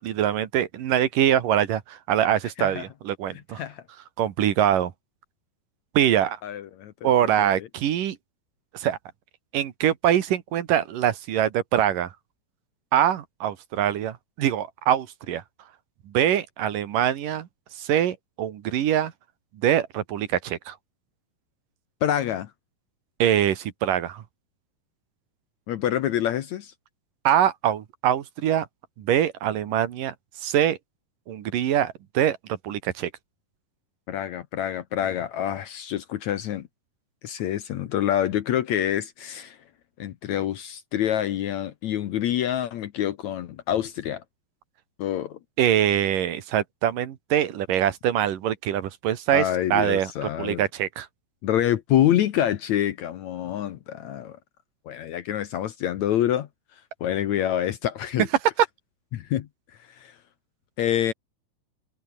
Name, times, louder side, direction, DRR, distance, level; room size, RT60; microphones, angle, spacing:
voice 1, 0.0-3.6 4.2-4.9 5.9-6.4 7.0-8.2 8.7-9.0 9.5-12.1 12.9-15.4 16.1-17.5 17.8-19.1 19.6-20.7 23.2-24.2 27.2-28.7 29.0-30.1 30.4-30.8 31.3-33.1 45.6-50.1 50.4-51.1, right 10 dB, 70° right, 3.2 m, -23 dB
voice 2, 3.3-3.8 6.4-7.7 22.0-22.5 25.7-26.7 34.1-36.7 37.2-39.6 40.0-44.2 45.0-45.4 49.3-50.6 51.4-54.4 54.9-56.5 57.0-58.3 59.1-59.5 60.0-60.1 60.8-61.1, left 11 dB, 65° left, 2.0 m, -26 dB
omnidirectional pair, 4.1 m